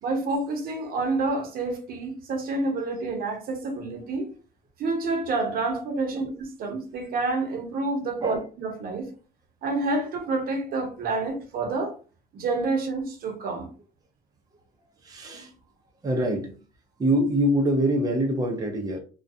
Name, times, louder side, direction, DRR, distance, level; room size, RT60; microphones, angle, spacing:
voice 1, 0.0-4.3 4.8-9.1 9.6-12.0 12.3-13.7, right 3 dB, 60° right, 0.8 m, -28 dB
voice 2, 15.0-15.5 16.0-16.6 17.0-19.0, right 1 dB, 20° right, 0.6 m, -25 dB
2.4 x 2.2 x 2.6 m
cardioid pair, 110°, 17 cm